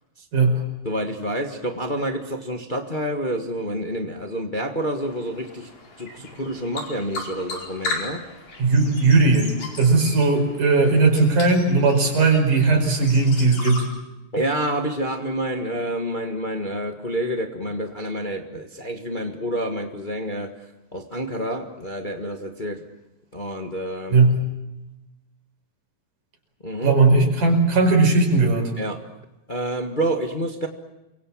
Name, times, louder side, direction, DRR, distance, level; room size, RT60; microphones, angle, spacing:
voice 1, 0.8-5.7 6.0-8.2 14.3-20.5 20.9-22.8 23.3-24.2 26.6-27.0 28.8-29.0 29.5-30.7, right 1 dB, 50° left, 4 dB, 0.5 m, -28 dB
sound 1, 5.0-13.8, left 3 dB, 75° left, 6.6 m, -36 dB
voice 2, 8.6-13.8 24.1-24.3 26.8-28.7, right 3 dB, 65° right, 3 dB, 6.7 m, -18 dB
28.0 x 23.5 x 7.4 m, 1.0 s
omnidirectional pair, 4.0 m